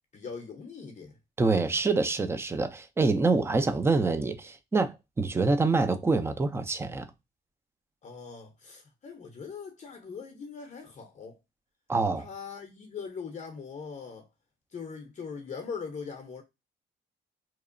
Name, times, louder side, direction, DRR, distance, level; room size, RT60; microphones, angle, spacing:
voice 1, 0.1-1.2 1.5-1.8 8.0-11.4 12.2-14.3 14.7-16.4, left 5 dB, 40° left, 0.6 m, -41 dB
voice 2, 1.4-7.0 11.9-12.3, right 3 dB, 15° right, 0.4 m, -26 dB
2.9 x 2.0 x 2.4 m
cardioid pair, 90°, 20 cm